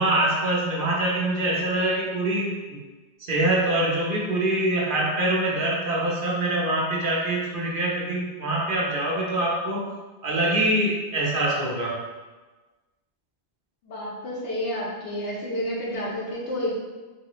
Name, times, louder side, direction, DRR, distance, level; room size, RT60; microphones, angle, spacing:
voice 1, 0.0-2.8 3.2-9.9 10.2-12.0, right 1 dB, 55° right, -4 dB, 0.9 m, -24 dB
voice 2, 13.8-16.7, left 1 dB, 85° left, -4 dB, 1.2 m, -30 dB
3.6 x 2.8 x 3.0 m, 1.3 s
omnidirectional pair, 1.1 m